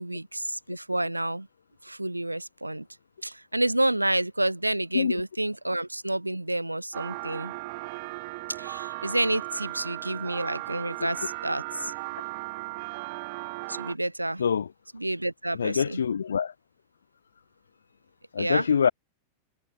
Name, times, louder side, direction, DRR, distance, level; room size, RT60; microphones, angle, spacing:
voice 1, 0.0-1.5 1.8-2.9 3.2-7.5 8.6-11.9 13.7-14.4 14.9-16.0 18.4-18.7, right 1 dB, 85° right, 0.3 m, -29 dB
sound 1, 6.9-13.9, right 26 dB, 50° right, 1.0 m, -36 dB
voice 2, 15.6-16.5 18.3-18.9, left 7 dB, 70° left, 0.6 m, -24 dB
figure-of-eight pair, 90°, 0 cm